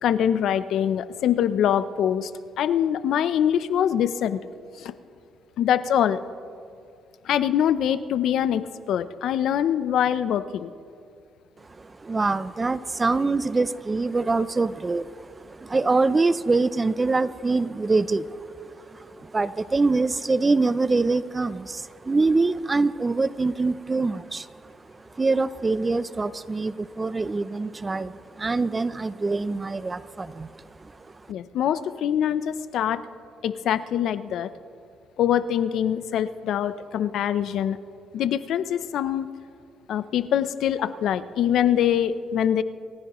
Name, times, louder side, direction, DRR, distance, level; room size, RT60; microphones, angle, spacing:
voice 1, 0.0-2.3 2.6-4.4 4.8-4.9 5.6-6.2 7.2-10.7 31.3-33.0 33.4-34.5 35.2-37.8 38.1-39.3 39.9-42.6, left 9 dB, 70° left, 14 dB, 0.6 m, -24 dB
voice 2, 11.8-24.5 25.2-30.5 30.8-30.9, right 3 dB, 20° right, 16 dB, 0.4 m, -24 dB
27.5 x 15.0 x 3.1 m, 2.4 s
cardioid pair, 115°, 0 cm